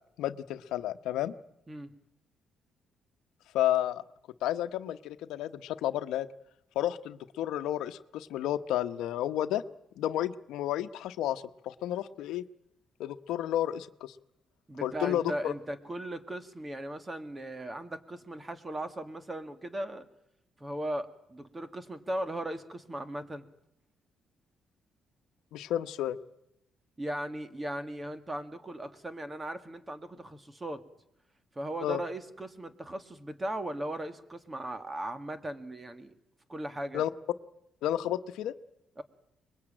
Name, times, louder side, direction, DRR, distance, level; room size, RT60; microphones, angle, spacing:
voice 1, 0.2-1.3 3.5-4.0 4.4-6.3 6.7-9.6 10.0-12.4 13.0-14.1 14.8-15.5 25.5-26.2 31.8-32.0 36.9-37.1 37.8-38.5, left 12 dB, 90° left, 11 dB, 0.9 m, -31 dB
voice 2, 14.7-20.1 20.6-23.5 27.0-30.8 31.6-36.1 36.5-37.0 39.0-39.1, right 1 dB, 20° right, 10 dB, 2.1 m, -38 dB
24.0 x 21.0 x 9.0 m, 0.81 s
cardioid pair, 90°, 0 cm